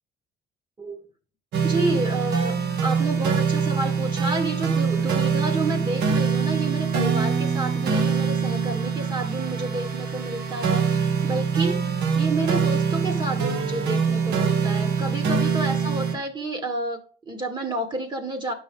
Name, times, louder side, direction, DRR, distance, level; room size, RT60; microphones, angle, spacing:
sound 1, 1.5-16.1, right 6 dB, 80° right, 1.6 m, -24 dB
voice 1, 1.6-2.6 2.8-18.5, right 2 dB, 25° right, 6 dB, 1.4 m, -30 dB
9.7 x 6.3 x 3.6 m, 0.40 s
cardioid pair, 110°, 17 cm